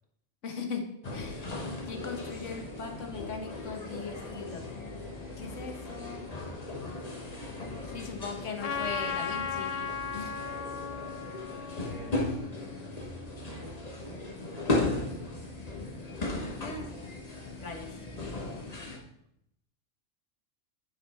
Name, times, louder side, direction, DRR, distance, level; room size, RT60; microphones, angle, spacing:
voice 1, 0.4-0.8 1.1-1.6 1.9-4.6 5.4-6.3 7.9-10.3 16.6-16.9 17.6-17.9, left 5 dB, 80° left, 4 dB, 1.5 m, -39 dB
sound 1, 1.0-19.0, left 2 dB, 35° left, 1.3 m, -37 dB
Trumpet, 8.6-13.3, left 6 dB, 55° left, 0.4 m, -37 dB
voice 2, 11.8-14.2, right 2 dB, 80° right, 2 dB, 1.8 m, -51 dB
9.1 x 5.4 x 4.3 m, 0.75 s
omnidirectional pair, 1.2 m